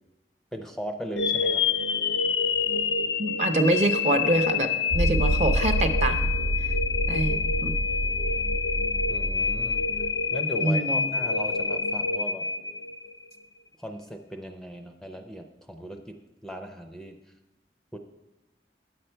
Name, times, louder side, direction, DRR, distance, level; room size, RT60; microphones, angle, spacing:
voice 1, 0.5-1.7 9.1-9.9 10.3-12.4 13.8-17.2 17.9-18.0, equal, 5° left, 5 dB, 0.5 m, -38 dB
sound 1, 1.2-13.3, left 5 dB, 80° left, 0.5 m, -27 dB
voice 2, 3.2-6.3 7.1-7.7 10.6-11.1, right 2 dB, 40° right, 7 dB, 0.6 m, -25 dB
sound 2, 4.9-10.2, right 1 dB, 85° right, 0.8 m, -28 dB
9.9 x 8.0 x 4.4 m, 1.0 s
head